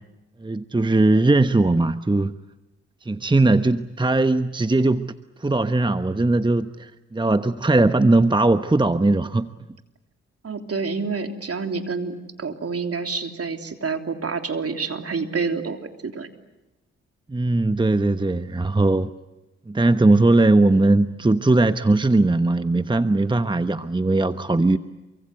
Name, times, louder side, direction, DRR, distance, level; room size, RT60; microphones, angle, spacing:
voice 1, 0.4-2.3 3.0-5.1 5.4-9.5 17.3-19.1 19.7-24.8, right 2 dB, 15° right, 11 dB, 1.1 m, -19 dB
voice 2, 10.4-16.3, right 4 dB, 50° right, 6 dB, 3.3 m, -28 dB
28.5 x 24.0 x 7.9 m, 1.0 s
supercardioid pair, 45°, 31 cm